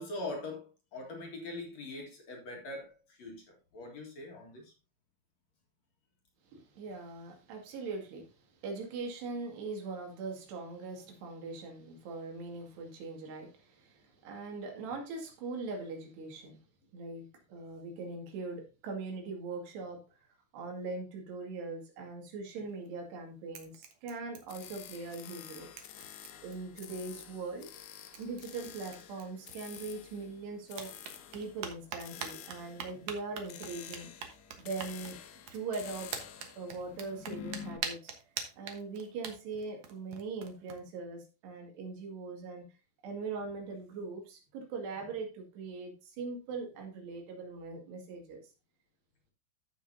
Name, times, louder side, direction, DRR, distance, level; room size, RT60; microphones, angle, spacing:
voice 1, 0.0-4.7, left 2 dB, 50° left, 2.7 m, -42 dB
voice 2, 6.5-8.4 8.6-16.6 16.9-20.0 20.5-25.7 26.4-27.7 28.2-30.9 31.3-34.1 34.6-35.2 35.5-36.2 36.6-38.1 38.6-42.7 43.0-48.4, right 3 dB, 85° right, 4.3 m, -41 dB
sound 1, 22.6-23.2 23.5-25.1 25.3-25.4 25.8-27.1 27.8-27.9 28.1-30.3 30.7-40.8, right 7 dB, 60° right, 1.8 m, -45 dB
sound 2, 24.5-37.8, left 9 dB, 80° left, 1.7 m, -49 dB
14.5 x 6.1 x 2.7 m
omnidirectional pair, 4.7 m